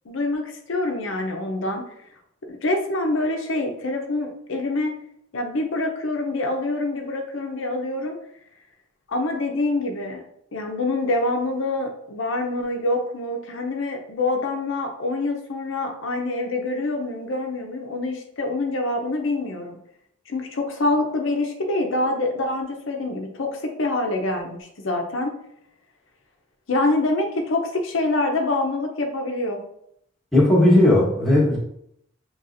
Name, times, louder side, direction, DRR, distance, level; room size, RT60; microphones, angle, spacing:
voice 1, 0.1-1.8 2.5-4.9 5.3-8.2 9.1-10.2 10.5-19.8 20.3-25.3 26.7-29.6, left 2 dB, 70° left, 3 dB, 0.6 m, -25 dB
voice 2, 30.3-31.6, left 1 dB, ahead, -5 dB, 1.1 m, -16 dB
5.6 x 3.0 x 2.6 m, 0.72 s
head